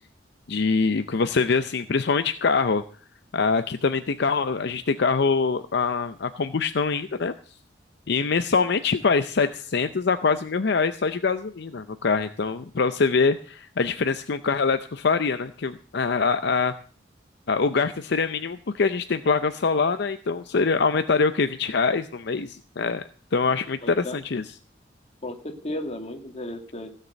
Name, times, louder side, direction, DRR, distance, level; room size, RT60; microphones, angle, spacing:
voice 1, 0.5-2.8 3.3-7.3 8.1-16.7 17.5-23.0 23.3-24.4, left 4 dB, 65° left, 10 dB, 0.6 m, -24 dB
voice 2, 23.8-24.2 25.2-26.9, left 1 dB, 35° left, 4 dB, 2.2 m, -34 dB
16.0 x 6.7 x 8.0 m, 0.43 s
head